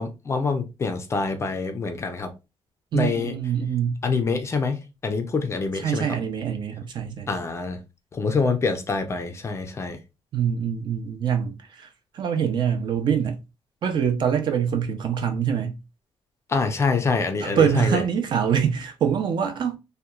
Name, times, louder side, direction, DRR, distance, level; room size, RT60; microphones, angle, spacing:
voice 1, 0.0-2.3 2.9-3.3 4.0-4.8 5.0-6.1 7.3-7.8 8.1-10.0 16.5-18.0, left 4 dB, 25° left, 0.4 m, -25 dB
voice 2, 2.9-4.0 5.8-7.3 10.3-11.9 12.1-13.4 13.8-15.8 17.4-19.8, right 8 dB, 50° right, 0.5 m, -24 dB
2.8 x 2.2 x 2.2 m
cardioid pair, 160°, 10 cm